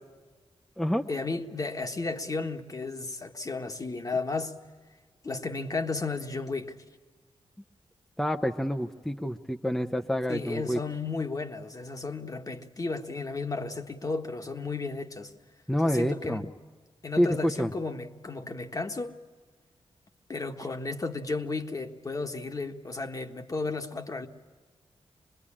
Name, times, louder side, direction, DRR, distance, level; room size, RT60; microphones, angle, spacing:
voice 1, 1.1-4.6 5.2-6.8 10.3-15.3 15.8-16.5 17.0-19.1 20.3-24.3, left 3 dB, 35° left, 1.5 m, -33 dB
voice 2, 8.2-10.8 15.7-16.5 17.2-17.7, equal, 5° left, 0.8 m, -27 dB
25.0 x 21.5 x 8.7 m
wide cardioid pair, 115°, 11 cm